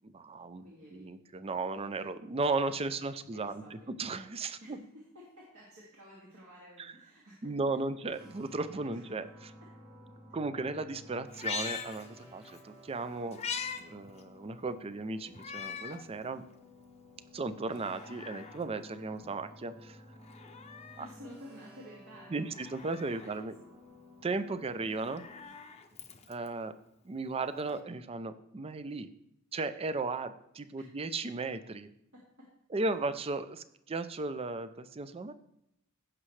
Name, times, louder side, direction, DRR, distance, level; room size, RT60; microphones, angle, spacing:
voice 1, 0.0-4.8 6.8-6.9 7.4-9.5 10.3-13.4 13.8-16.4 17.3-20.0 21.0-21.1 22.3-23.5 24.2-25.2 26.3-26.7 27.0-29.1 29.5-31.9 32.7-35.3, right 3 dB, 25° right, 12 dB, 0.5 m, -36 dB
voice 2, 0.6-1.1 2.9-3.9 4.6-7.8 8.9-9.0 17.4-17.6 20.8-22.6 23.2-23.8 25.4-25.5 31.0-31.1, equal, 65° right, -6 dB, 2.3 m, -53 dB
sound 1, 8.1-25.4, left 1 dB, 50° right, 2.4 m, -55 dB
Meow, 11.3-12.6 13.0-13.8 14.2-14.3 15.3-16.0 16.5-16.6 17.6-18.6 20.2-21.2 22.5-23.3 24.8-26.5 27.7-27.8, left 6 dB, 30° left, 0.7 m, -41 dB
15.5 x 6.2 x 3.2 m, 0.79 s
head